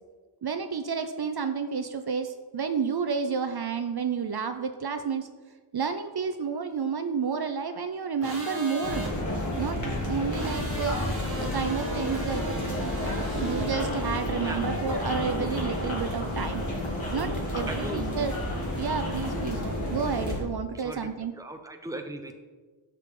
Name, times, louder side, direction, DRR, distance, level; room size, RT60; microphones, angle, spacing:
voice 1, 0.4-5.3 5.7-9.1 9.6-9.8 10.1-11.0 11.4-12.4 13.4-16.6 17.1-18.3 18.8-19.6 19.9-21.3, right 6 dB, 50° right, 8 dB, 0.6 m, -30 dB
sound 1, 8.2-9.1 10.3-13.7, equal, 25° right, 2.1 m, -38 dB
sound 2, 8.8-20.4, left 1 dB, 35° left, 2.1 m, -31 dB
sound 3, 13.7-19.6, left 2 dB, 65° left, 2.3 m, -41 dB
voice 2, 14.4-14.9 17.7-18.1 20.7-22.4, right 2 dB, 5° right, 5 dB, 0.8 m, -39 dB
10.5 x 6.7 x 3.7 m, 1.4 s
wide cardioid pair, 115°, 50 cm